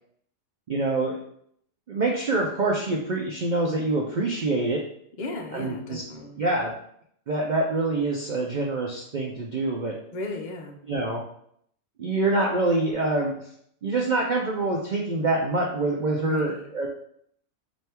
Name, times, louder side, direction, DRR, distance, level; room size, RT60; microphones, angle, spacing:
voice 1, 0.7-1.2 1.9-4.8 5.5-6.0 6.4-6.7 7.3-9.9 10.9-11.2 12.0-13.3 13.8-16.9, right 2 dB, 70° right, -1 dB, 0.4 m, -25 dB
voice 2, 5.2-6.4 10.1-10.8 16.2-16.6, left 2 dB, 45° left, 2 dB, 0.6 m, -36 dB
3.3 x 2.6 x 4.3 m, 0.68 s
omnidirectional pair, 1.4 m